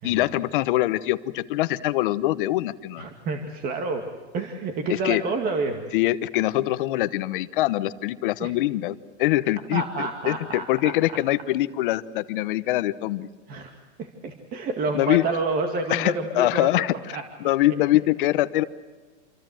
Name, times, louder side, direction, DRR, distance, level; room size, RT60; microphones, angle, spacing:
voice 1, 0.0-3.0 5.0-5.2 5.9-9.8 10.2-13.3 14.9-15.2 15.9-16.9 17.4-18.6, left 16 dB, 50° left, 13 dB, 1.0 m, -23 dB
voice 2, 3.0-4.0 4.3-5.9 8.4-8.5 9.7-10.9 13.5-16.8 17.1-17.2, right 3 dB, 25° right, 5 dB, 2.1 m, -29 dB
27.5 x 24.5 x 7.8 m, 1.4 s
supercardioid pair, 160°, 35 cm